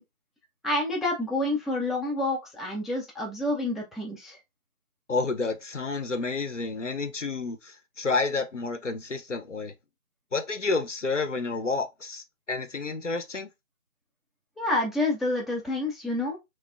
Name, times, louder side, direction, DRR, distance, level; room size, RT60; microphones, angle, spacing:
voice 1, 0.6-4.4 14.6-16.4, left 2 dB, ahead, 0.4 m, -28 dB
voice 2, 5.1-9.7 10.3-13.5, left 3 dB, 60° left, 0.5 m, -30 dB
3.0 x 2.0 x 2.2 m
figure-of-eight pair, 180°, 42 cm